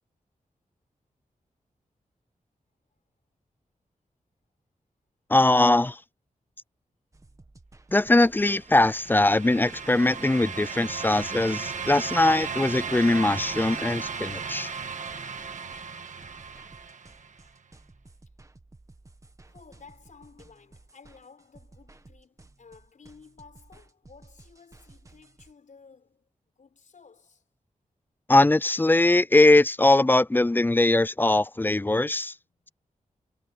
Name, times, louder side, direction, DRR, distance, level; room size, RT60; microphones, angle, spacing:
voice 1, 5.3-6.0 7.9-14.7 28.3-32.3, left 2 dB, 15° left, 0.4 m, -21 dB
sound 1, 7.1-25.5, right 2 dB, 25° right, 1.6 m, -54 dB
sound 2, 8.5-17.4, right 6 dB, 65° right, 1.6 m, -36 dB
voice 2, 19.4-27.5 32.5-32.7, left 5 dB, 65° left, 6.0 m, -54 dB
wide cardioid pair, 125°, 14 cm